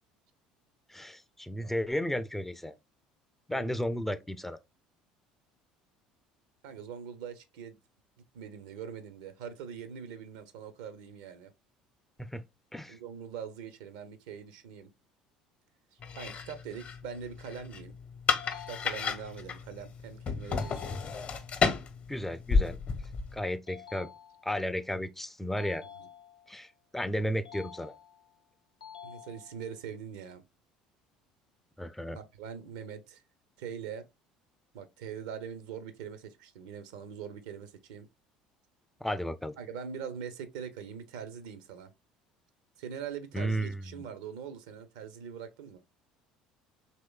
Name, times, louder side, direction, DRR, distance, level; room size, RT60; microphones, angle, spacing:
voice 1, 0.9-2.7 3.5-4.6 12.2-12.4 12.7-13.0 22.1-22.8 23.3-24.1 24.4-25.8 26.5-27.9 31.8-32.2 39.0-39.5 43.3-43.8, equal, 5° left, 0.4 m, -33 dB
voice 2, 6.6-7.8 8.3-11.5 12.9-14.9 15.9-17.9 18.7-20.8 26.0-26.1 29.0-30.4 32.1-33.2 33.6-34.0 34.7-38.1 39.6-41.9 42.8-45.8, right 7 dB, 70° right, 0.6 m, -42 dB
sound 1, 16.0-23.4, left 5 dB, 45° left, 0.6 m, -32 dB
sound 2, 18.4-19.4 20.6-21.6 23.7-24.7 25.6-26.6 27.4-28.4 28.8-29.8, left 8 dB, 90° left, 0.5 m, -50 dB
4.3 x 3.1 x 2.2 m
hypercardioid pair, 65°, 3 cm